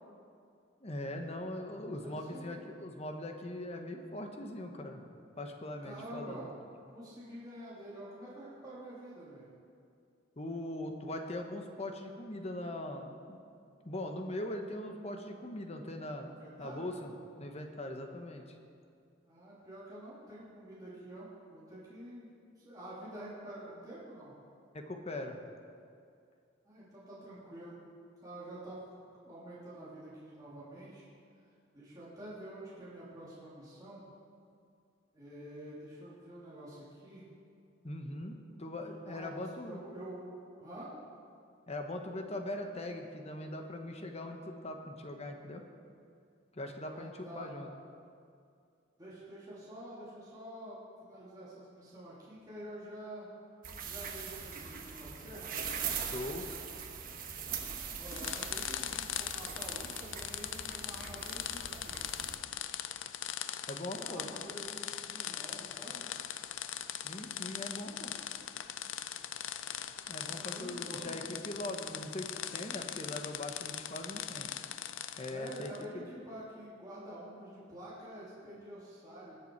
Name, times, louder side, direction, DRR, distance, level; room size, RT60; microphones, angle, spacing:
voice 1, 0.8-5.0 5.4-6.5 10.4-13.4 13.8-16.3 16.6-17.1 17.4-18.4 24.7-25.4 37.8-39.8 41.7-45.6 46.5-47.7 56.1-56.5 63.7-64.3 67.0-68.1 70.1-74.5 75.2-76.1, left 1 dB, 35° left, 4 dB, 1.1 m, -41 dB
voice 2, 1.7-2.6 5.8-6.5 6.9-9.5 16.2-16.9 19.2-22.3 22.6-24.3 26.6-27.8 28.2-28.9 29.2-31.1 31.7-34.0 35.1-37.2 39.0-40.9 46.8-47.6 49.0-53.3 53.8-55.5 57.9-62.0 63.9-66.0 70.1-71.2 75.3-79.3, right 1 dB, 20° right, -10 dB, 2.9 m, -48 dB
sound 1, 53.6-62.4, right 6 dB, 50° right, 1.1 m, -41 dB
sound 2, 58.1-75.8, left 11 dB, 75° left, 0.5 m, -40 dB
20.5 x 7.0 x 4.6 m, 2.4 s
head